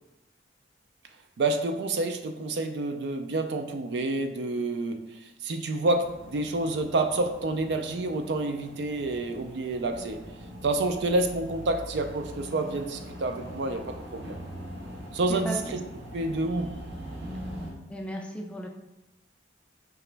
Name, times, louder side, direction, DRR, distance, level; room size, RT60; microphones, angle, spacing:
voice 1, 1.4-10.2 10.6-13.9 14.1-14.4 15.1-15.8 16.1-16.8, right 2 dB, 60° right, 6 dB, 0.4 m, -28 dB
sound 1, 5.9-17.7, equal, 80° right, 0.9 m, -42 dB
voice 2, 15.3-15.6 17.9-18.7, equal, 5° left, 1 dB, 0.3 m, -35 dB
4.8 x 2.9 x 3.3 m, 0.97 s
head